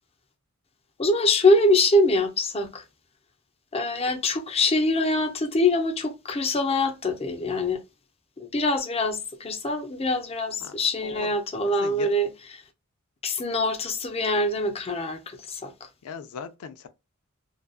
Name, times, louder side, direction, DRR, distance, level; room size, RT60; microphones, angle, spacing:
voice 1, 1.0-2.8 3.7-7.8 8.4-12.6 13.2-15.7, left 2 dB, 25° left, 0.6 m, -24 dB
voice 2, 11.7-12.1 16.0-16.9, left 6 dB, 90° left, 0.4 m, -38 dB
2.5 x 2.2 x 2.3 m
head